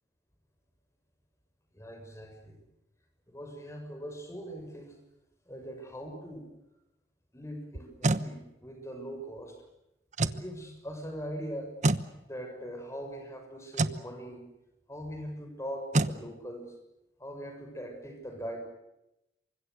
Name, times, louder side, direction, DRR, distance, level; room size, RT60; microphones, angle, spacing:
voice 1, 1.7-2.6 3.3-5.0 5.5-6.5 7.3-9.6 10.2-11.8 12.2-14.4 14.9-16.7 17.2-18.6, equal, 15° left, 5 dB, 6.7 m, -41 dB
sound 1, 7.7-8.3 10.1-10.5 11.8-12.1 13.7-14.0 15.9-16.2, right 2 dB, 40° right, 1.1 m, -26 dB
28.0 x 25.0 x 6.6 m, 0.89 s
head